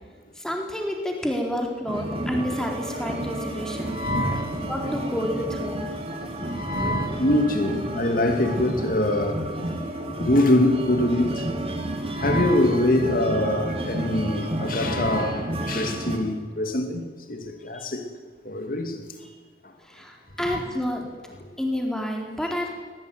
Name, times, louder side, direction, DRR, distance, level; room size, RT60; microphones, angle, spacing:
voice 1, 0.4-4.0 4.3-5.9 17.7-17.9 19.8-21.1 21.6-22.7, equal, 5° left, 4.1 m, -29 dB
sound 1, 1.9-16.2, right 1 dB, 35° right, 2.9 m, -31 dB
voice 2, 3.9-4.6 6.5-9.4 10.2-11.4 12.1-18.0 18.4-19.0 20.4-20.6, left 1 dB, 50° left, 2.8 m, -24 dB
21.0 x 19.0 x 9.7 m
head